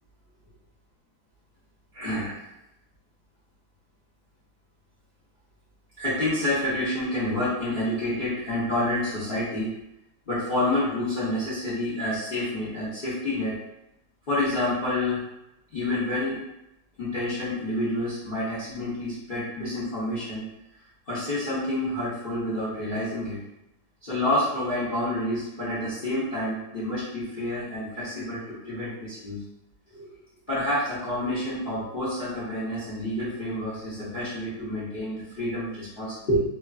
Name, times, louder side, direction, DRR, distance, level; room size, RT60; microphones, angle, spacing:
voice 1, 1.9-2.5 6.0-9.7 10.3-13.6 14.3-15.2 15.7-16.4 17.0-20.5 21.1-23.4 24.0-29.4 29.9-30.1 30.5-36.4, left 1 dB, 60° left, -9 dB, 0.5 m, -28 dB
3.0 x 2.4 x 2.3 m, 0.90 s
omnidirectional pair, 2.2 m